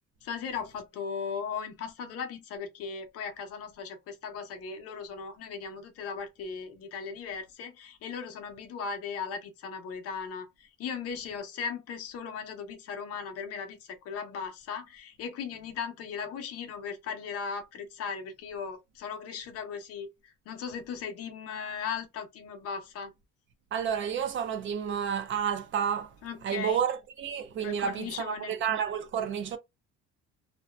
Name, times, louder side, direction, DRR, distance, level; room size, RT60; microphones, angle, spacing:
voice 1, 0.2-23.1 26.2-26.8 27.6-28.5, left 6 dB, 55° left, 0.7 m, -37 dB
voice 2, 23.7-26.1 26.4-29.6, right 8 dB, 40° right, 0.4 m, -30 dB
2.6 x 2.2 x 2.2 m
cardioid pair, 170°, 29 cm